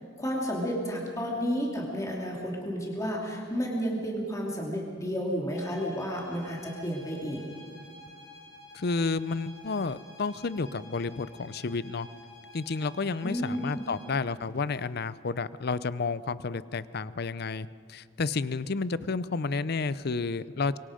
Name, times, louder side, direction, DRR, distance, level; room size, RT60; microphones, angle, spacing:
voice 1, 0.2-7.4 13.2-13.8, equal, 15° left, -2 dB, 2.6 m, -31 dB
sound 1, 5.5-14.2, left 1 dB, 85° left, 6.3 m, -51 dB
voice 2, 8.7-12.1 12.5-20.8, left 4 dB, 55° left, 17 dB, 0.6 m, -31 dB
25.5 x 23.0 x 5.1 m, 2.2 s
head